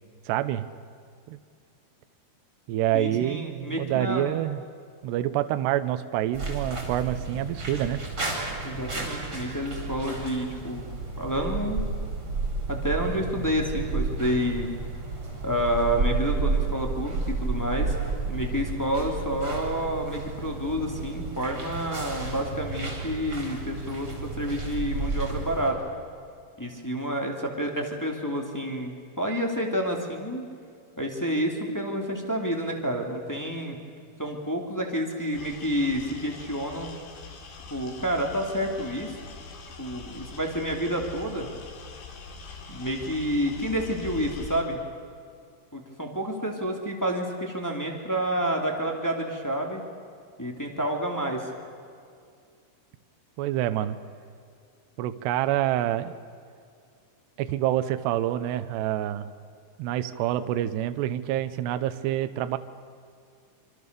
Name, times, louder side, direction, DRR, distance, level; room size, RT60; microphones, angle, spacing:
voice 1, 0.3-0.7 1.3-1.4 2.7-4.6 5.0-8.0 53.4-54.0 55.0-56.1 57.4-59.3 59.8-62.6, right 12 dB, 75° right, 10 dB, 2.8 m, -27 dB
voice 2, 2.9-4.4 8.6-10.9 11.2-11.8 12.7-14.7 15.4-17.9 18.2-25.7 26.6-30.4 31.0-33.8 34.2-36.9 37.7-39.1 39.8-41.4 42.7-44.8 45.7-49.8 50.4-51.5, equal, 5° left, 1 dB, 1.6 m, -29 dB
sound 1, 6.3-25.7, right 3 dB, 20° right, 4.6 m, -32 dB
sound 2, 35.3-44.6, left 4 dB, 70° left, 4.8 m, -43 dB
26.5 x 26.0 x 6.8 m, 2.3 s
omnidirectional pair, 5.4 m